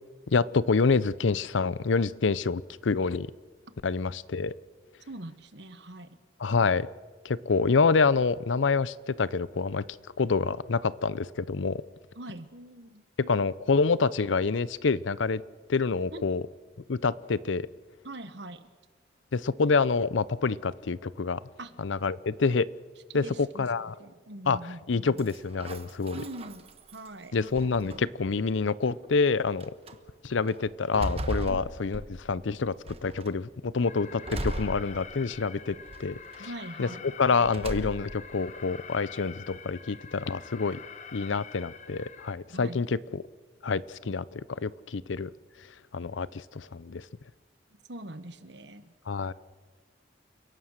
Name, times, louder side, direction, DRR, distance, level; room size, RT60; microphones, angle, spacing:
voice 1, 0.3-3.3 3.8-4.5 6.4-6.9 7.2-9.8 10.2-11.8 13.2-15.4 15.7-16.4 16.9-17.7 19.3-21.4 21.8-22.7 23.1-23.9 24.5-24.6 24.9-26.2 27.3-29.7 30.2-32.7 33.0-36.5 36.8-36.9 37.2-40.8 41.1-43.2 43.6-45.3 45.9-47.0 49.1-49.3, left 4 dB, 90° left, 19 dB, 0.6 m, -27 dB
voice 2, 5.1-6.2 12.1-13.0 16.1-16.2 18.0-18.7 21.6-21.8 23.1-24.8 26.1-26.7 26.9-27.4 31.4-31.6 36.4-37.1 42.5-42.8 47.9-48.9, right 1 dB, 70° right, 11 dB, 1.4 m, -42 dB
sound 1, 25.2-27.1 27.5-28.3 29.0-29.1 29.6-29.9 30.5-32.4 32.9-33.4 34.3-35.4 35.9-36.5 37.4-38.3, right 1 dB, 30° right, 1.3 m, -37 dB
Alarm, 33.8-42.3, left 6 dB, 40° left, 1.0 m, -46 dB
29.5 x 17.0 x 6.6 m, 1.5 s
head